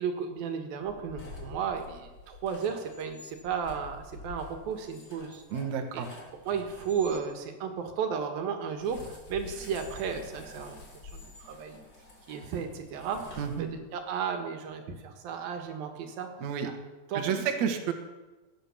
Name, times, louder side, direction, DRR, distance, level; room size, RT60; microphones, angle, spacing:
voice 1, 0.0-5.4 5.9-6.0 6.5-10.8 11.1-11.8 12.3-16.3 16.6-16.7 17.1-17.5, right 6 dB, 80° right, 5 dB, 3.3 m, -34 dB
sound 1, 0.8-7.2 8.8-14.0, left 3 dB, 30° left, 3.0 m, -48 dB
voice 2, 5.5-6.1 13.4-13.7 16.4-16.7 17.1-17.9, right 7 dB, 60° right, 4 dB, 2.5 m, -30 dB
17.0 x 11.0 x 7.1 m, 1.2 s
omnidirectional pair, 4.2 m